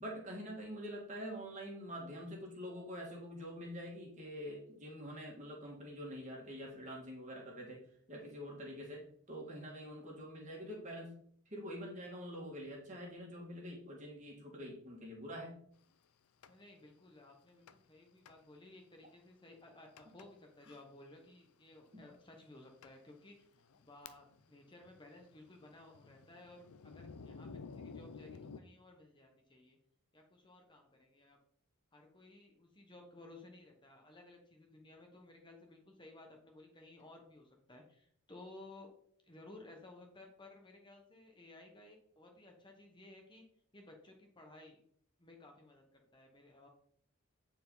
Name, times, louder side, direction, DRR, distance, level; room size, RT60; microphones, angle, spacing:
voice 1, 0.0-7.8 8.1-11.1 11.5-15.6 21.9-22.0, equal, 35° right, -2 dB, 2.1 m, -46 dB
Thunder, 16.4-16.5 17.7-18.0 18.3-18.4 19.0-19.1 20.0-20.3 20.6-20.8 21.7-21.8 22.4-22.5 22.8-22.9 23.5-24.5 24.8-28.6, left 4 dB, 85° left, 0.5 m, -52 dB
voice 2, 16.5-23.5 23.8-29.8 30.1-31.4 31.9-38.9 39.2-43.4 43.7-44.8 45.2-46.7, left 2 dB, 20° left, 2 dB, 1.1 m, -57 dB
9.3 x 4.6 x 4.0 m, 0.63 s
head